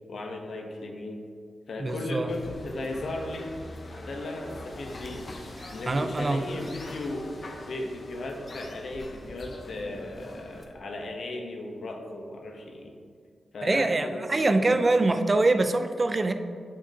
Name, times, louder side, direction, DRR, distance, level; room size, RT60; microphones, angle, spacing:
voice 1, 0.1-1.2 1.7-3.5 4.0-5.2 5.7-13.0 13.5-14.9, left 2 dB, 70° left, 2 dB, 0.8 m, -36 dB
voice 2, 1.8-2.3 5.9-6.4 13.6-16.3, right 2 dB, 35° right, 8 dB, 0.4 m, -24 dB
sound 1, 2.3-10.6, left 1 dB, 45° left, 0.8 m, -43 dB
6.3 x 6.2 x 2.8 m, 2.2 s
cardioid pair, 65°, 0 cm